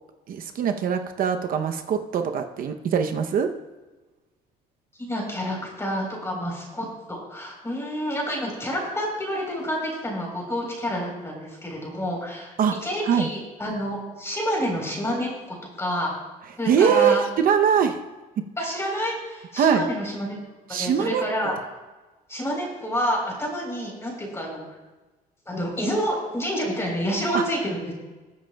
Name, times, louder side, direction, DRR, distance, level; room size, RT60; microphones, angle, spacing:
voice 1, 0.3-3.5 12.6-12.8 13.0-13.3 16.7-18.0 18.4-18.5 19.6-19.8 20.7-21.2 27.3-27.4, right 7 dB, 55° right, 6 dB, 0.7 m, -22 dB
voice 2, 5.0-12.5 12.8-16.1 16.6-17.2 18.6-20.4 20.7-21.5 22.3-24.6 25.5-27.9, equal, 15° left, -1 dB, 3.9 m, -28 dB
21.0 x 7.6 x 2.3 m, 1.2 s
cardioid pair, 110°, 17 cm